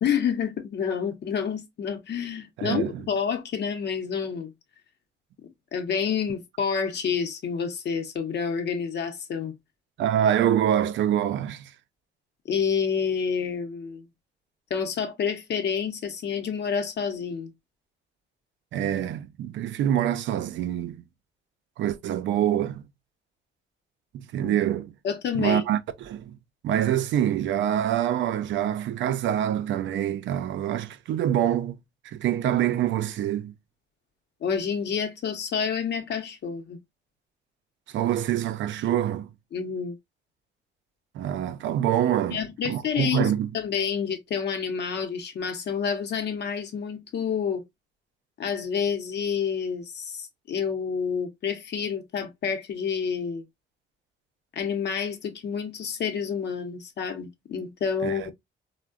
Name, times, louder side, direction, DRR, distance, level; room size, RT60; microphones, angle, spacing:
voice 1, 0.0-4.5 5.7-9.5 12.4-14.1 14.7-17.5 24.4-24.5 25.0-25.6 34.4-36.8 39.5-39.9 42.3-47.6 48.4-53.4 54.5-58.3, left 6 dB, 60° left, 0.7 m, -28 dB
voice 2, 2.6-3.0 10.0-11.7 18.7-21.0 21.8-22.8 24.1-24.9 25.4-26.4 26.6-31.8 32.0-33.5 37.9-39.3 41.1-42.4 42.7-43.5 58.0-58.3, right 10 dB, 70° right, 0.4 m, -25 dB
3.4 x 2.1 x 2.3 m
cardioid pair, 90°, 20 cm